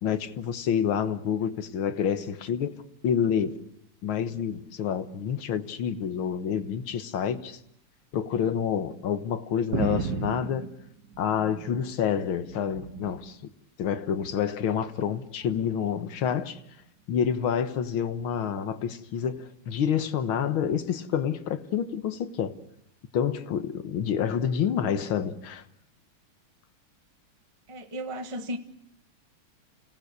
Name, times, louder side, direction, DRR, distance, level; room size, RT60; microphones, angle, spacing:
voice 1, 0.0-2.7 3.0-3.6 4.0-7.6 8.1-10.7 11.2-13.4 13.8-16.6 17.1-22.5 23.1-25.6, left 8 dB, 70° left, 2.0 m, -28 dB
sound 1, 9.7-11.9 12.3-13.2 14.1-14.5 15.5-15.7, right 6 dB, 55° right, 1.5 m, -34 dB
voice 2, 10.3-10.7 27.7-28.6, equal, 20° right, 1.2 m, -35 dB
29.0 x 18.0 x 6.7 m
omnidirectional pair, 2.4 m